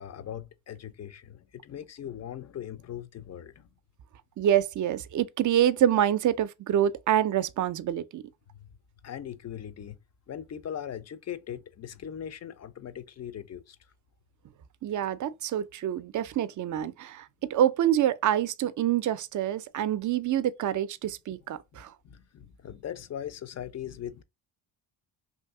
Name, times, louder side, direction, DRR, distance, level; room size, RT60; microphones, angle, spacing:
voice 1, 0.0-3.7 8.6-8.7 9.0-10.0 10.3-13.8 21.7-24.2, left 9 dB, 35° left, 0.4 m, -40 dB
voice 2, 4.4-8.2 14.8-21.9, right 11 dB, 45° right, 0.4 m, -26 dB
2.7 x 2.6 x 3.5 m
cardioid pair, 75°, 46 cm